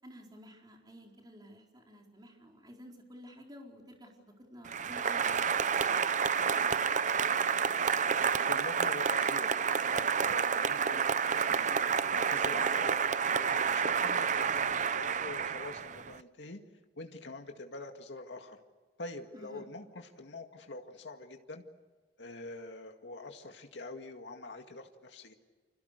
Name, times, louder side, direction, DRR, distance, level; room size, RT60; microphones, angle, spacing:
voice 1, 0.0-6.1 19.3-19.7, equal, 25° right, 1 dB, 4.4 m, -52 dB
Applause, 4.7-16.2, right 6 dB, 45° right, 0.7 m, -29 dB
voice 2, 8.1-11.7 12.1-16.6 17.0-18.6 19.0-21.6 22.2-25.3, left 2 dB, 85° left, 4 dB, 2.1 m, -45 dB
29.5 x 26.5 x 6.6 m, 1.4 s
head